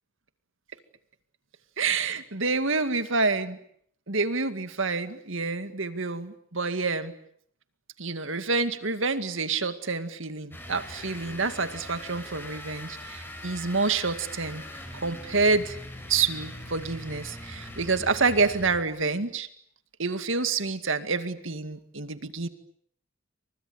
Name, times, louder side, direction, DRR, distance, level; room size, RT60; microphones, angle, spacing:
voice 1, 1.8-3.6 4.1-7.1 8.0-14.6 14.9-15.8 16.1-19.5 20.0-22.5, right 4 dB, 65° right, 10 dB, 2.2 m, -28 dB
sound 1, 10.5-19.0, left 1 dB, 10° left, 5.8 m, -41 dB
29.5 x 25.5 x 8.0 m, 0.66 s
head